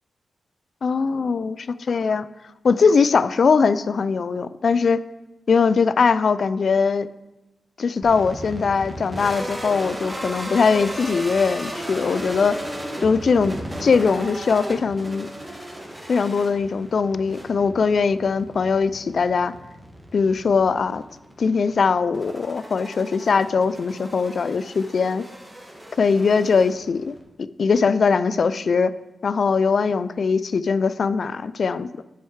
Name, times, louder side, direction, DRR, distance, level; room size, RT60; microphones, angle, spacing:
voice 1, 0.8-2.3 2.6-5.0 5.5-7.1 7.8-12.6 13.0-15.3 16.1-19.5 20.1-21.0 21.4-25.3 26.0-27.1 27.6-28.9 29.2-31.9, left 5 dB, 65° left, 15 dB, 0.3 m, -21 dB
sound 1, 8.0-27.2, equal, 15° right, 1.6 m, -35 dB
7.8 x 6.5 x 4.6 m, 1.0 s
cardioid pair, 85°, 0 cm